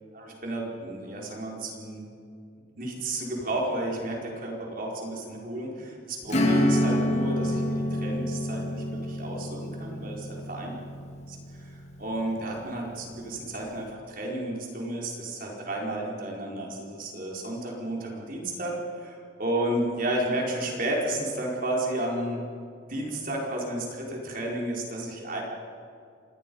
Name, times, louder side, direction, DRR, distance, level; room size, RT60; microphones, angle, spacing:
voice 1, 0.1-2.0 2.8-10.7 11.3-22.4 22.9-25.4, right 1 dB, 45° right, -1 dB, 4.7 m, -32 dB
Acoustic guitar / Strum, 6.3-12.5, left 1 dB, 35° left, 2.5 m, -28 dB
27.0 x 20.5 x 5.5 m, 2.4 s
head